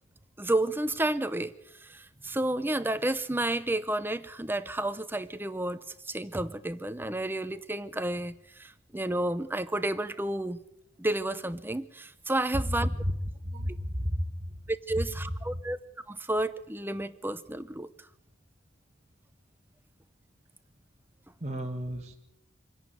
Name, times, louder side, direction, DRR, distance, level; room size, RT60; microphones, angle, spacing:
voice 1, 0.4-1.5 1.8-10.6 11.0-12.9 14.7-15.8 16.1-17.9, right 1 dB, 10° right, 12 dB, 0.7 m, -31 dB
voice 2, 13.4-14.5 21.4-22.1, equal, 30° right, 0 dB, 1.7 m, -32 dB
26.0 x 11.0 x 9.3 m, 0.82 s
head